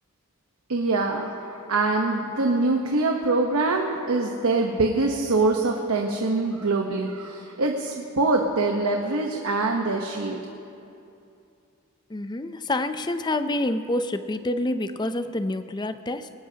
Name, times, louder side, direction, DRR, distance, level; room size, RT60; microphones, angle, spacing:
voice 1, 0.7-10.5, right 3 dB, 85° right, 2 dB, 1.0 m, -24 dB
voice 2, 12.1-16.3, left 1 dB, 20° left, 10 dB, 0.4 m, -27 dB
21.0 x 19.0 x 2.8 m, 2.6 s
head